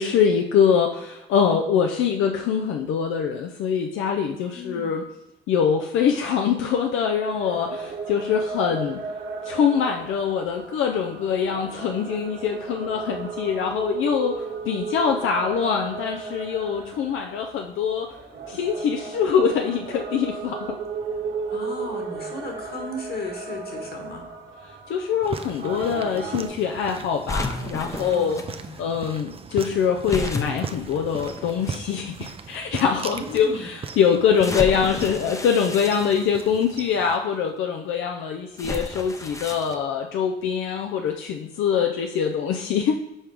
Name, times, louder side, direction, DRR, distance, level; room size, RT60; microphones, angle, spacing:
voice 1, 0.0-5.0 5.5-9.0 9.4-18.2 18.5-20.8 24.9-28.4 28.8-43.0, left 7 dB, 85° left, 3 dB, 0.5 m, -24 dB
voice 2, 4.5-4.9 21.5-24.2 27.9-28.9 33.0-33.7, left 2 dB, 50° left, 2 dB, 1.7 m, -36 dB
sound 1, 7.2-26.5, right 4 dB, 70° right, 1.7 m, -35 dB
sound 2, 25.2-37.2, right 5 dB, 30° right, 0.4 m, -38 dB
sound 3, 27.3-28.5 30.1-31.7 32.5-32.6 34.4-36.7 38.6-39.7, left 2 dB, 15° left, 0.6 m, -32 dB
5.5 x 4.6 x 4.8 m, 0.94 s
cardioid pair, 90°, 20 cm